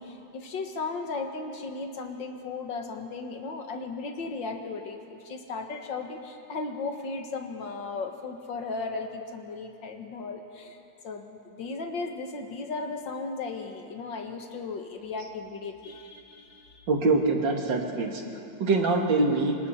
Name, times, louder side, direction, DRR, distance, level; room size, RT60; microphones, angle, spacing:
voice 1, 0.0-10.8 11.0-16.9, left 4 dB, 85° left, 4 dB, 2.2 m, -36 dB
voice 2, 16.9-18.2 18.6-19.6, right 3 dB, 80° right, 1 dB, 2.8 m, -24 dB
26.5 x 25.5 x 4.4 m, 2.8 s
omnidirectional pair, 2.0 m